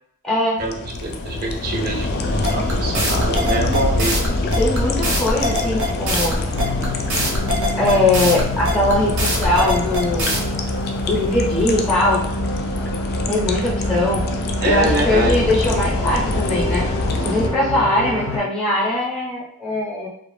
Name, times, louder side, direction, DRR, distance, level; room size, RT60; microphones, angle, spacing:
voice 1, 0.2-0.6 4.6-6.4 7.8-10.4 11.1-12.2 13.3-14.2 14.6-16.9 17.2-20.1, left 1 dB, ahead, -5 dB, 0.6 m, -21 dB
sound 1, 0.6-17.5, left 2 dB, 50° left, 0.3 m, -25 dB
voice 2, 1.0-4.2 14.6-15.4, right 2 dB, 45° right, 0 dB, 0.4 m, -24 dB
sound 2, 2.4-10.4, right 1 dB, 90° right, 0.7 m, -22 dB
sound 3, 6.5-18.4, left 1 dB, 90° left, 0.6 m, -27 dB
2.4 x 2.0 x 3.1 m, 0.69 s
head